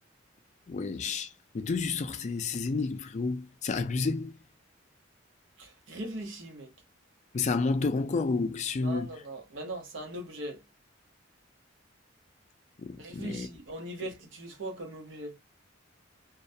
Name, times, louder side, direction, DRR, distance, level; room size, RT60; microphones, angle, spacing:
voice 1, 0.7-1.3 1.5-4.3 7.3-9.1 12.8-13.5, left 4 dB, 40° left, 0.3 m, -30 dB
voice 2, 5.6-6.7 8.8-10.6 13.0-15.4, right 1 dB, 75° right, 0.8 m, -40 dB
2.2 x 2.1 x 2.6 m
head